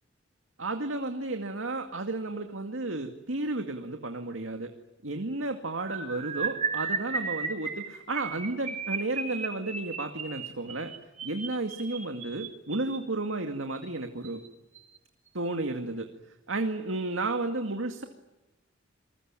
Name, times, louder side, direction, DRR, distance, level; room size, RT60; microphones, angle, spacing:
voice 1, 0.6-4.7 5.0-10.9 11.2-14.4 15.3-16.1 16.5-18.0, right 2 dB, 80° right, 5 dB, 2.2 m, -32 dB
sound 1, 5.8-13.0 13.7-14.0 14.2-14.5 14.7-15.0, right 5 dB, 35° right, 5.6 m, -35 dB
28.0 x 21.5 x 9.1 m, 1.0 s
head